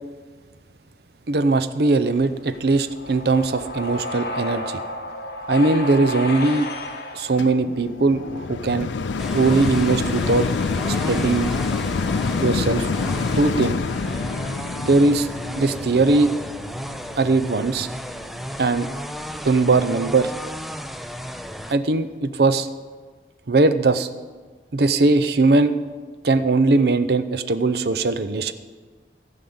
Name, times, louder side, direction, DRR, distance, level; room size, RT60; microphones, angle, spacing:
voice 1, 1.3-4.8 5.5-6.7 7.1-8.9 9.3-10.5 10.9-11.5 12.4-12.9 13.4-13.8 14.9-15.3 15.6-16.3 17.2-17.9 18.6-18.9 19.4-20.3 21.7-22.7 23.5-24.1 24.7-25.8 26.2-28.5, right 3 dB, 60° right, 12 dB, 0.6 m, -20 dB
sound 1, 2.2-8.3, left 1 dB, 65° left, 1.2 m, -32 dB
sound 2, 7.4-18.7 19.3-19.4, left 4 dB, 90° left, 0.5 m, -27 dB
sound 3, 9.2-21.7, equal, ahead, 0.3 m, -34 dB
15.5 x 5.5 x 7.9 m, 1.4 s
head